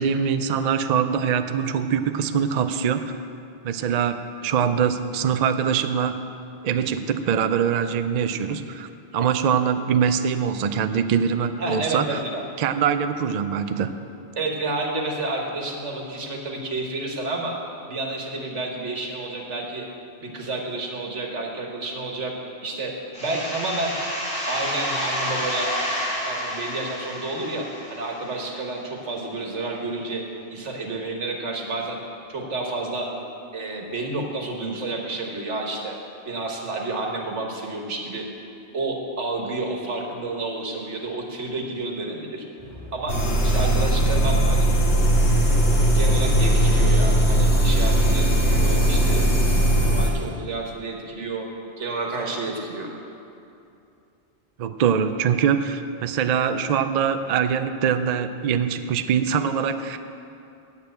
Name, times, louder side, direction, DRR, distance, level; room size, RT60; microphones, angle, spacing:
voice 1, 0.0-3.0 3.6-6.2 6.6-12.2 12.6-13.9 54.6-60.0, right 7 dB, 55° right, 9 dB, 0.5 m, -23 dB
voice 2, 11.6-12.4 14.4-17.6 17.9-19.9 20.2-22.3 22.6-22.9 23.2-23.9 24.5-25.8 26.2-27.6 27.9-30.2 30.5-32.0 32.3-33.1 33.5-35.9 36.3-38.3 38.7-42.4 42.9-43.2 43.4-44.7 45.9-49.3 49.8-51.5 51.8-52.9, right 2 dB, 90° right, 1 dB, 1.7 m, -30 dB
sound 1, 23.1-28.6, equal, 5° left, 3.2 m, -30 dB
sound 2, 42.6-48.0, equal, 25° left, 3.0 m, -37 dB
sound 3, 43.1-50.1, right 1 dB, 70° left, 1.8 m, -19 dB
8.8 x 8.1 x 8.0 m, 2.6 s
omnidirectional pair, 1.2 m